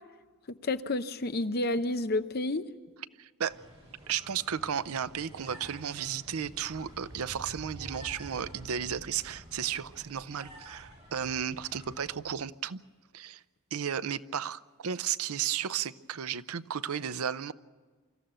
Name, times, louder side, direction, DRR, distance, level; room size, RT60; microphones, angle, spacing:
voice 1, 0.5-2.6, left 2 dB, 45° left, 10 dB, 0.7 m, -30 dB
voice 2, 3.2-3.6 4.1-12.8 13.1-13.4 13.7-17.5, right 8 dB, 75° right, 15 dB, 0.6 m, -34 dB
sound 1, 3.5-12.2, equal, 25° right, 6.0 m, -49 dB
25.0 x 14.0 x 8.9 m, 1.4 s
head